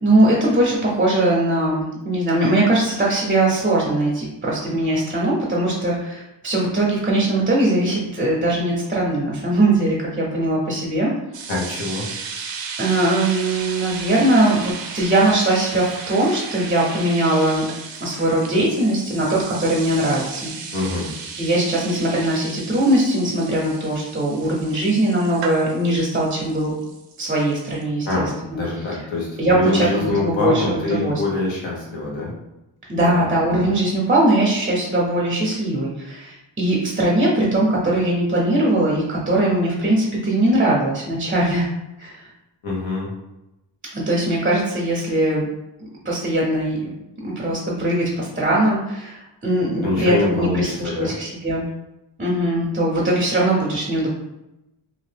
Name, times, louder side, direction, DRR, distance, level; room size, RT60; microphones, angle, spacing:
voice 1, 0.0-11.1 12.8-17.6 18.0-20.5 21.4-26.7 27.2-28.2 28.5-28.6 29.4-31.2 32.9-41.7 42.0-42.2 43.9-45.5 45.8-46.9 47.2-51.6 52.2-54.1, right 1 dB, 20° right, -4 dB, 0.5 m, -20 dB
sound 1, 11.3-27.8, right 5 dB, 70° right, 0.6 m, -35 dB
voice 2, 11.5-12.1 20.7-21.1 28.1-32.3 33.0-33.2 42.6-43.1 49.8-51.1, left 2 dB, 80° left, -4 dB, 1.2 m, -24 dB
2.8 x 2.4 x 3.3 m, 0.92 s
wide cardioid pair, 150°, 46 cm